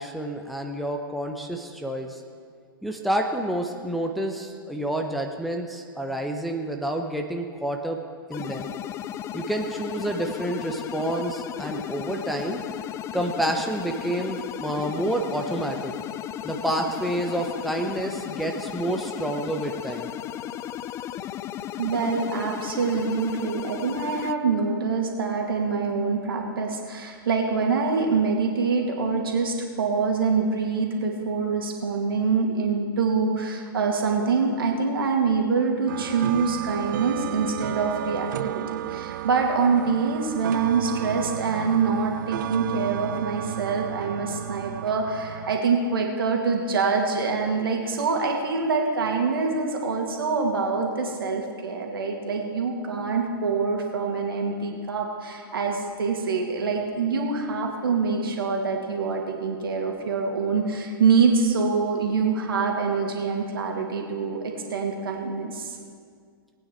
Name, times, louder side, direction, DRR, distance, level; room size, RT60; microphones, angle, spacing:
voice 1, 0.0-2.2 2.8-8.0 8.3-8.7 9.3-12.6 13.1-15.9 16.4-20.1, right 1 dB, ahead, 2 dB, 0.9 m, -29 dB
sound 1, 8.3-24.3, left 11 dB, 20° left, 0.3 m, -35 dB
voice 2, 21.8-65.8, right 4 dB, 70° right, 2 dB, 2.2 m, -25 dB
sound 2, 35.9-45.6, right 13 dB, 55° right, 0.4 m, -33 dB
19.5 x 9.1 x 4.6 m, 2.1 s
figure-of-eight pair, 110°, 13 cm